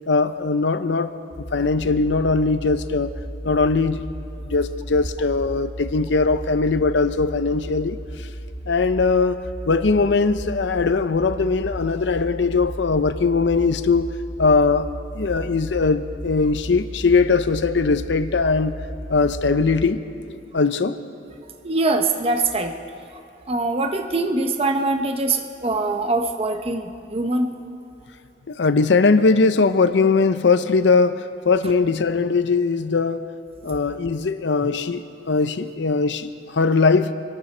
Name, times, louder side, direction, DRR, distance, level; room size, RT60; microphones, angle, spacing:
voice 1, 0.1-1.1 1.4-3.1 3.4-4.0 4.4-8.0 8.7-14.1 14.4-14.9 15.1-18.8 19.1-20.0 20.5-21.0 28.5-33.2 33.6-35.0 35.3-37.1, left 4 dB, 75° left, 0.6 m, -20 dB
sound 1, 1.3-19.9, equal, 25° left, 1.9 m, -35 dB
voice 2, 21.6-22.7 23.5-27.5, right 2 dB, 35° right, 0.8 m, -23 dB
25.0 x 12.5 x 4.4 m
head